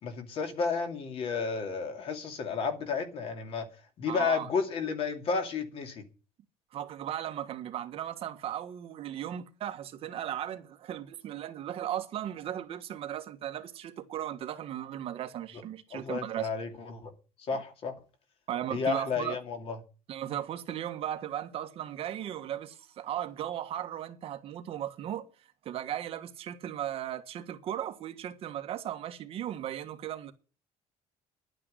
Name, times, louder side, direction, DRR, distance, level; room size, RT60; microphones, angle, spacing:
voice 1, 0.0-3.7 4.0-6.0 15.9-17.1 17.5-17.9 18.7-19.8, left 5 dB, 45° left, 2.6 m, -32 dB
voice 2, 4.1-4.5 6.7-16.5 17.5-17.6 18.5-19.4 20.1-25.3 25.6-30.3, right 11 dB, 45° right, 1.4 m, -36 dB
11.5 x 9.0 x 7.6 m
cardioid pair, 175°, 13 cm